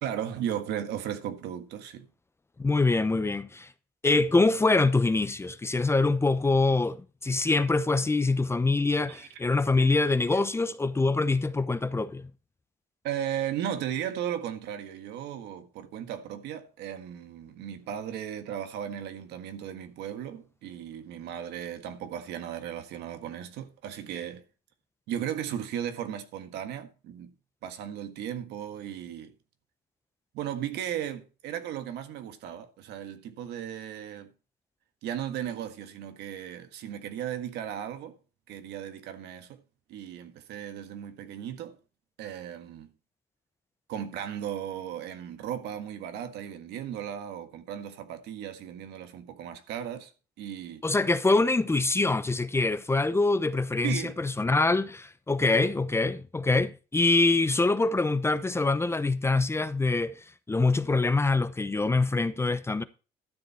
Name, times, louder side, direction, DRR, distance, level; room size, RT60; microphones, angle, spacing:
voice 1, 0.0-2.1 9.1-9.3 10.3-10.4 13.0-24.4 25.1-27.3 27.6-29.3 30.3-34.3 35.0-38.2 38.5-39.6 39.9-41.8 42.2-42.9 43.9-50.1 50.4-50.8 53.8-54.2 55.4-55.6, right 10 dB, 85° right, 1.6 m, -36 dB
voice 2, 2.6-3.7 4.0-12.3 50.8-60.2 60.5-62.8, left 3 dB, 15° left, 0.7 m, -24 dB
12.5 x 7.2 x 4.2 m
cardioid pair, 110°, 17 cm